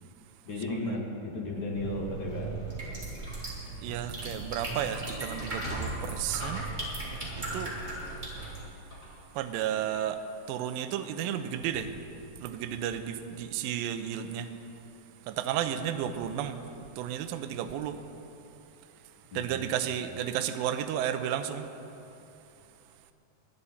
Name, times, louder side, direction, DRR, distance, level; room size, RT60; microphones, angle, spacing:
voice 1, 0.5-2.5 19.3-19.5, left 1 dB, 75° left, -3 dB, 1.1 m, -34 dB
sound 1, 1.7-8.6, right 2 dB, 15° right, 2.7 m, -38 dB
voice 2, 3.4-6.7 7.1-7.8 9.3-12.0 12.4-14.6 15.2-18.0 19.3-21.7, right 10 dB, 80° right, 8 dB, 2.1 m, -33 dB
Sliding door, 5.3-9.9, equal, 30° left, 2.4 m, -42 dB
22.5 x 10.0 x 4.3 m, 2.8 s
omnidirectional pair, 4.7 m